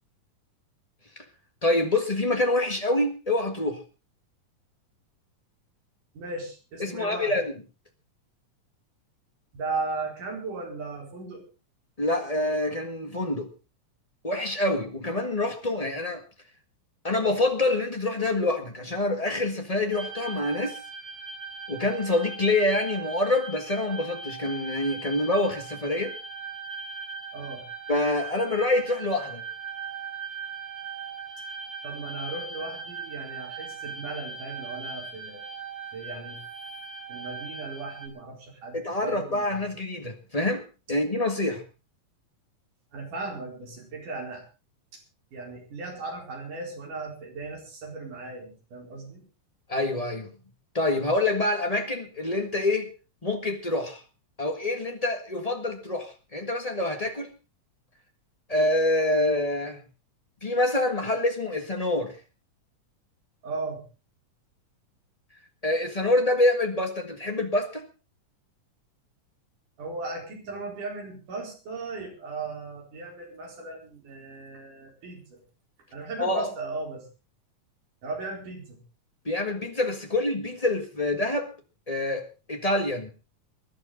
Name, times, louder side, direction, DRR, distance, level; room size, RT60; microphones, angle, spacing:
voice 1, 1.6-3.8 6.8-7.5 12.0-13.5 14.2-16.2 17.0-20.8 21.7-26.2 27.9-29.4 38.7-40.6 40.9-41.6 49.7-50.3 50.7-52.9 53.2-54.0 54.4-57.3 58.5-59.8 60.4-62.1 65.6-67.8 76.2-76.5 79.2-81.5 81.9-83.1, left 2 dB, 35° left, 4 dB, 0.6 m, -26 dB
voice 2, 6.2-7.3 9.5-11.4 27.3-27.6 31.8-35.4 35.9-36.4 37.1-39.6 42.9-44.4 45.3-49.2 63.4-63.8 69.8-75.4 75.9-77.1 78.0-78.8, right 3 dB, 75° right, 0 dB, 5.9 m, -37 dB
sound 1, 19.9-38.1, right 5 dB, 30° right, 2.6 m, -39 dB
22.0 x 11.5 x 3.9 m, 0.32 s
omnidirectional pair, 3.7 m